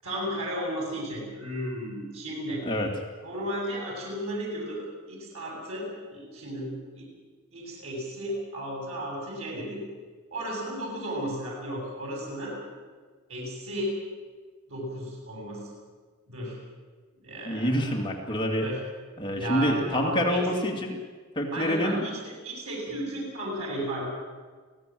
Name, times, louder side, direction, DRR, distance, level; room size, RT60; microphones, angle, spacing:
voice 1, 0.0-2.6 3.2-4.8 5.1-7.1 7.5-9.8 10.3-12.6 13.3-14.0 14.7-15.7 16.3-16.6 17.2-17.9 18.6-18.8 19.4-20.4 21.5-24.0, equal, 90° right, -2 dB, 7.8 m, -34 dB
voice 2, 17.4-18.7 19.2-21.0 21.4-22.0, equal, 25° left, 0 dB, 2.4 m, -27 dB
24.5 x 17.0 x 7.7 m, 1.5 s
head